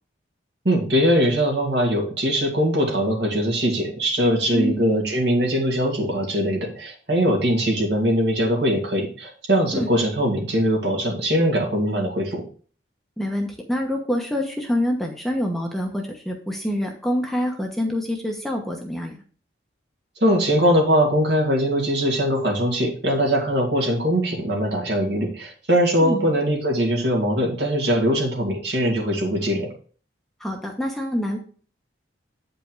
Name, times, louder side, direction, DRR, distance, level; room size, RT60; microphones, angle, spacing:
voice 1, 0.6-12.4 20.2-29.7, equal, 60° right, -1 dB, 2.4 m, -21 dB
voice 2, 13.2-19.2 26.0-26.3 30.4-31.4, equal, ahead, 1 dB, 1.0 m, -26 dB
9.1 x 5.2 x 4.7 m, 0.42 s
head